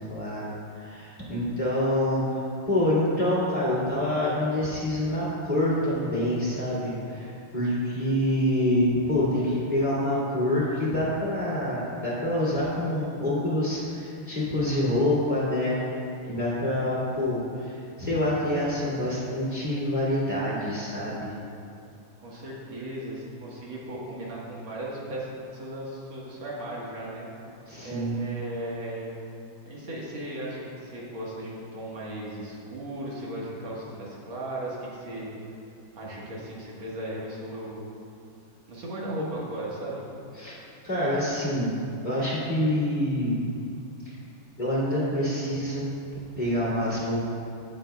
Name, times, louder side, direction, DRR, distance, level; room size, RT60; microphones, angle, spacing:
voice 1, 0.0-15.8 16.3-21.3 27.7-28.3 40.4-40.6 40.8-41.7 42.0-43.4 44.1-44.2 44.6-45.9 46.4-47.2, left 1 dB, 25° left, -9 dB, 2.2 m, -26 dB
voice 2, 22.2-27.3 27.8-29.1 29.7-35.3 36.0-38.0 38.7-40.0, right 1 dB, 75° right, -5 dB, 2.3 m, -36 dB
16.0 x 7.0 x 2.3 m, 2.6 s
omnidirectional pair, 2.2 m